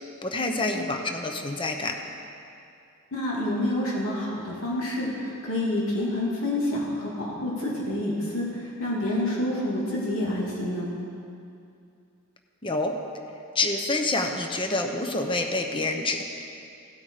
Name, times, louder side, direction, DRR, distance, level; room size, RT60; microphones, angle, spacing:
voice 1, 0.2-2.0 12.6-13.0 13.5-16.2, left 2 dB, 25° left, 4 dB, 0.8 m, -27 dB
voice 2, 3.1-10.9, left 1 dB, 70° left, -5 dB, 3.0 m, -28 dB
17.0 x 8.3 x 5.0 m, 2.6 s
head